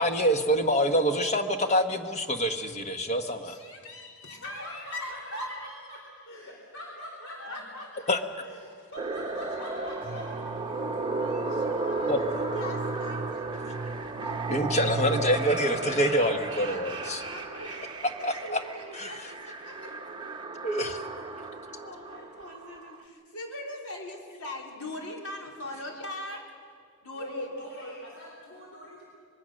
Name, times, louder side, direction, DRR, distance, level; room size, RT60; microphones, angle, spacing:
voice 1, 0.0-3.6 8.1-8.2 12.1-12.2 14.5-17.2 18.2-18.6 18.9-19.3 20.6-21.0, equal, 30° left, 6 dB, 1.3 m, -26 dB
voice 2, 3.4-5.9 7.4-8.0 8.8-8.9 9.6-10.2 10.5-14.8 16.6-19.2 19.6-19.9 21.3-26.4 27.0-27.5, left 1 dB, 75° left, -1 dB, 4.3 m, -42 dB
voice 3, 4.4-8.1 8.4-10.8 22.1-22.3 27.1-29.0, equal, 55° left, -2 dB, 4.0 m, -43 dB
sound 1, 9.0-23.0, right 3 dB, 20° right, 1.0 m, -34 dB
sound 2, 10.0-16.0, right 3 dB, 35° right, 0.6 m, -38 dB
25.0 x 21.5 x 6.5 m, 2.1 s
head